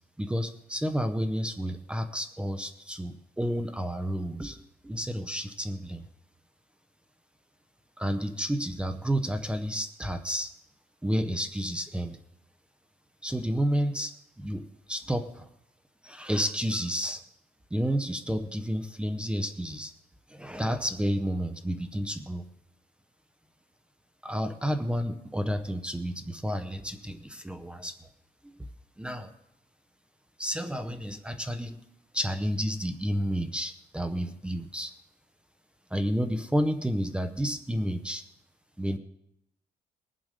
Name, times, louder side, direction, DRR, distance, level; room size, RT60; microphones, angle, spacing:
voice 1, 0.2-6.0 8.0-10.5 11.0-12.2 13.2-14.1 14.4-15.5 16.0-17.2 17.7-19.9 20.3-22.5 24.2-28.1 28.4-28.5 29.0-29.3 30.4-31.8 32.1-34.9 35.9-38.2 38.8-39.0, equal, 5° right, 9 dB, 0.6 m, -31 dB
20.0 x 7.4 x 5.0 m, 0.79 s
cardioid pair, 165°, 16 cm